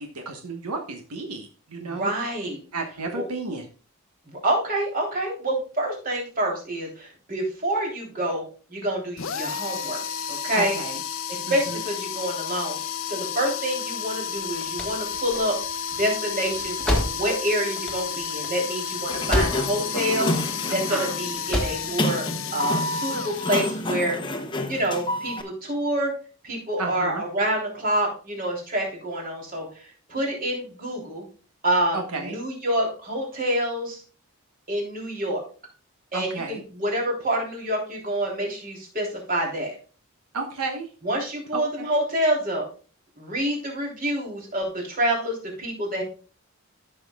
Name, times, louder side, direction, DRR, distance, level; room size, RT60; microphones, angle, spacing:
voice 1, 0.0-2.1 2.7-3.7 10.5-11.0 11.5-11.8 20.7-21.2 26.8-27.2 31.9-32.3 36.1-36.6 40.3-40.9 41.5-41.8, right 3 dB, 90° right, 3 dB, 1.4 m, -32 dB
voice 2, 1.8-2.6 3.1-3.2 4.3-10.8 11.3-12.8 13.0-15.6 15.9-20.3 20.7-22.3 22.5-24.2 24.7-26.1 26.4-31.2 31.6-34.0 34.7-35.4 36.1-39.8 41.0-42.6 43.2-46.0, right 1 dB, 40° right, -1 dB, 3.4 m, -27 dB
sound 1, 9.2-24.1, left 7 dB, 60° left, 0.6 m, -32 dB
sound 2, 14.3-19.9 20.2-20.9 21.3-21.9, left 1 dB, 5° left, 1.4 m, -29 dB
Sliding door, 18.9-25.4, left 1 dB, 20° left, 0.8 m, -29 dB
13.5 x 6.3 x 2.4 m, 0.38 s
head